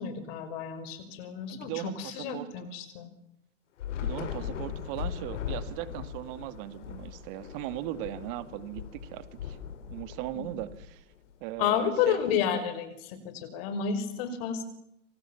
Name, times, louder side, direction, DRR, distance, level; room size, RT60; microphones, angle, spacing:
voice 1, 0.0-3.1 10.4-10.5 11.6-14.6, left 8 dB, 50° left, 10 dB, 5.7 m, -31 dB
voice 2, 1.5-2.7 4.0-9.6 9.9-11.0 11.4-12.2, right 14 dB, 45° right, 13 dB, 2.3 m, -38 dB
Thunder / Rain, 3.8-11.3, left 8 dB, 75° left, 4.3 m, -39 dB
27.5 x 27.5 x 7.3 m, 0.82 s
hypercardioid pair, 135°, 37 cm